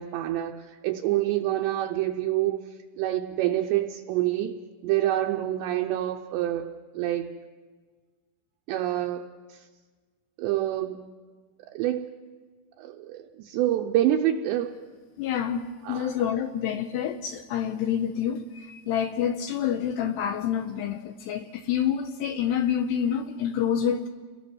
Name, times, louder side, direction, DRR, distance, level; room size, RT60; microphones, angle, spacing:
voice 1, 0.0-2.6 3.0-7.3 8.7-9.2 9.5-9.7 10.4-11.0 11.6-12.1 12.8-14.7 15.8-16.1, right 13 dB, 75° right, 2.9 m, -27 dB
voice 2, 15.2-24.1, left 9 dB, 75° left, 2.6 m, -28 dB
30.0 x 21.5 x 6.2 m
omnidirectional pair, 5.5 m